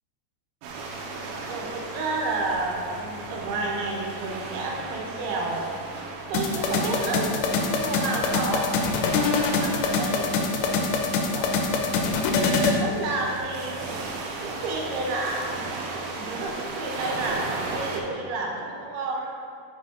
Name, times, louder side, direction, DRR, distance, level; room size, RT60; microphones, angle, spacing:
sound 1, 0.6-18.0, right 3 dB, 90° right, 3.2 m, -36 dB
voice 1, 1.5-5.7 6.3-8.7 9.4-10.4 10.6-10.8 11.3-12.0 12.6-14.1 14.4-15.7 15.9-19.3, right 2 dB, 75° right, -1 dB, 2.7 m, -31 dB
sound 2, 6.3-12.8, left 4 dB, 80° left, 2.8 m, -24 dB
6.5 x 6.3 x 4.2 m, 2.4 s
omnidirectional pair, 5.1 m